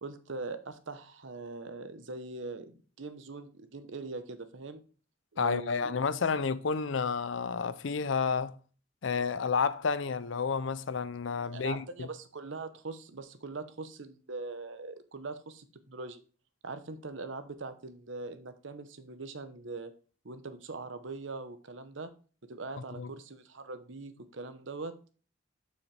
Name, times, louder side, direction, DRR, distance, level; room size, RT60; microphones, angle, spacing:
voice 1, 0.0-4.8 5.3-6.0 11.4-16.2 16.6-19.9 20.2-22.1 22.5-25.0, right 3 dB, 75° right, 0.9 m, -42 dB
voice 2, 5.4-8.6 9.0-12.1 23.0-23.1, left 5 dB, 75° left, 0.5 m, -30 dB
7.2 x 6.4 x 3.3 m
head